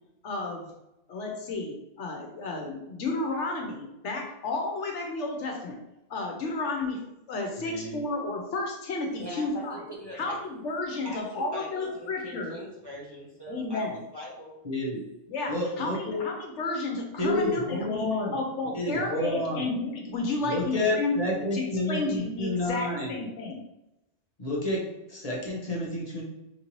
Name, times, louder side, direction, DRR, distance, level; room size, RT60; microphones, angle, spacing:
voice 1, 0.2-0.7 1.1-5.8 6.1-9.9 10.1-12.6 13.5-14.0 15.3-23.6, left 2 dB, 75° left, 2 dB, 1.0 m, -32 dB
voice 2, 7.6-8.0 14.6-15.0 15.5-16.2 17.2-18.3 18.7-19.7 20.5-23.1 24.4-24.8 25.1-26.2, left 1 dB, 35° left, -3 dB, 1.0 m, -29 dB
voice 3, 9.2-10.4 11.0-14.5, equal, 20° right, -5 dB, 1.0 m, -41 dB
5.0 x 2.6 x 3.0 m, 0.91 s
omnidirectional pair, 1.3 m